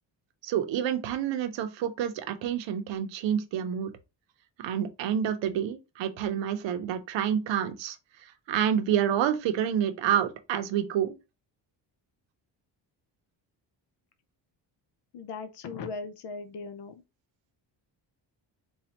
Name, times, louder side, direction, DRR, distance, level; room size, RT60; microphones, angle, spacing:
voice 1, 0.4-3.9 4.6-8.0 8.5-11.1, right 9 dB, 80° right, 0.7 m, -28 dB
voice 2, 15.1-16.9, left 4 dB, 70° left, 0.7 m, -38 dB
4.2 x 2.4 x 2.8 m
cardioid pair, 115°, 43 cm